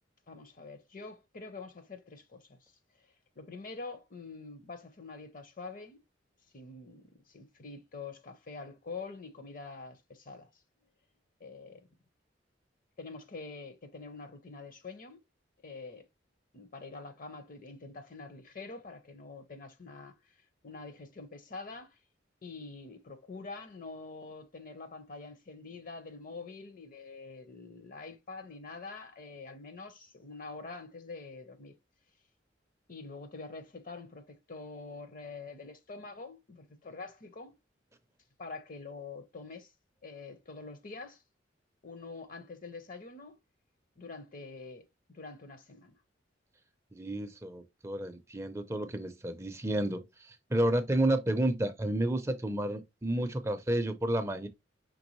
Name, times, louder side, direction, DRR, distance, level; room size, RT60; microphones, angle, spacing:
voice 1, 0.3-2.7 3.4-6.0 6.5-10.5 11.4-11.9 13.0-15.2 15.6-16.1 16.5-20.2 20.6-22.0 22.4-31.8 32.9-37.5 38.4-39.7 40.0-41.2 41.8-43.4 44.0-44.8 45.1-46.0, left 3 dB, 50° left, 0.7 m, -45 dB
voice 2, 46.9-54.5, right 1 dB, 15° right, 0.5 m, -31 dB
5.3 x 3.3 x 3.0 m
head